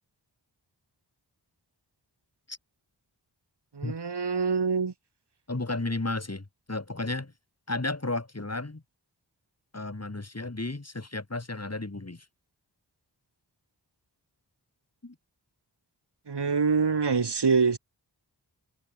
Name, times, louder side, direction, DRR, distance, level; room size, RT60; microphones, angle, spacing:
voice 1, 3.7-4.9 16.3-17.8, right 5 dB, 70° right, 2.3 m, -25 dB
voice 2, 5.5-7.3 7.7-8.8 9.7-12.2 15.0-15.1, left 2 dB, 35° left, 4.5 m, -33 dB
wide cardioid pair, 45°, 42 cm